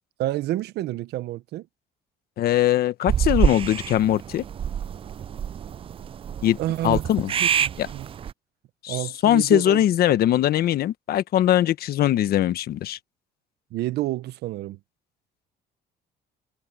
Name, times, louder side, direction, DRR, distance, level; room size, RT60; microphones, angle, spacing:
voice 1, 0.2-1.7 6.6-7.0 7.4-8.1 8.9-9.8 13.7-14.8, right 15 dB, 75° right, 1.0 m, -29 dB
voice 2, 2.4-4.4 6.4-6.6 6.8-7.3 7.8-7.9 8.8-13.0, left 12 dB, 65° left, 1.3 m, -21 dB
sound 1, 3.1-8.3, right 8 dB, 35° right, 0.4 m, -27 dB
cardioid pair, 110°, 17 cm